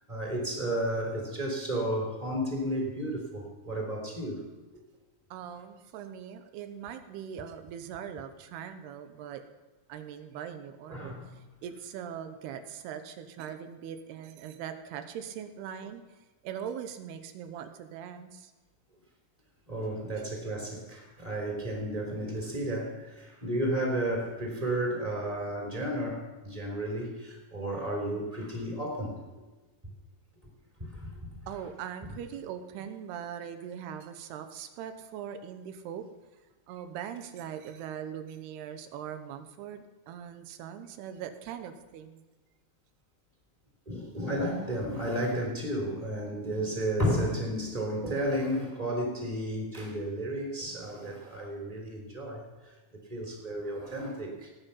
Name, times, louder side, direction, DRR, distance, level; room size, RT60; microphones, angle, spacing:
voice 1, 0.0-4.4 10.9-11.3 19.7-29.2 30.8-31.1 43.9-54.5, right 1 dB, 10° right, 0 dB, 2.9 m, -32 dB
voice 2, 5.3-9.4 9.9-16.2 16.4-18.5 31.5-36.1 36.7-42.2, right 8 dB, 90° right, 9 dB, 3.0 m, -41 dB
18.0 x 9.1 x 5.8 m, 1.2 s
omnidirectional pair, 4.6 m